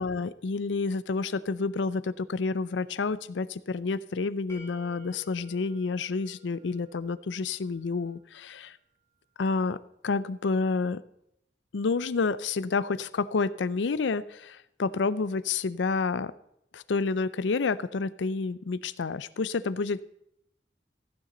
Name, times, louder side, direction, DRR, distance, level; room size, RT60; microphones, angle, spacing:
voice 1, 0.0-8.8 9.4-9.8 10.0-11.0 11.7-16.3 16.7-20.0, left 4 dB, 90° left, 17 dB, 0.5 m, -29 dB
sound 1, 4.5-7.4, left 3 dB, 15° left, 1.8 m, -52 dB
15.0 x 9.5 x 3.9 m, 0.76 s
head